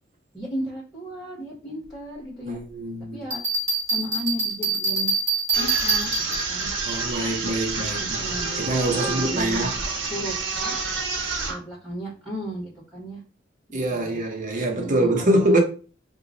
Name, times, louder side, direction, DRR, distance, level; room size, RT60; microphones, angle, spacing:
voice 1, 0.3-2.6 3.1-3.4 3.9-5.1 5.5-6.7 7.1-7.3 8.0-9.7 10.1-10.8 11.5-13.2 13.7-14.2 14.8-15.6, equal, ahead, 1.5 m, -35 dB
voice 2, 2.4-3.2 6.8-8.3 8.6-9.7 13.7-15.6, right 1 dB, 40° right, 0.8 m, -24 dB
Bell, 3.3-6.6, right 3 dB, 15° right, 1.3 m, -25 dB
sound 1, 5.5-11.6, right 4 dB, 90° right, 0.7 m, -28 dB
2.9 x 2.3 x 3.8 m
head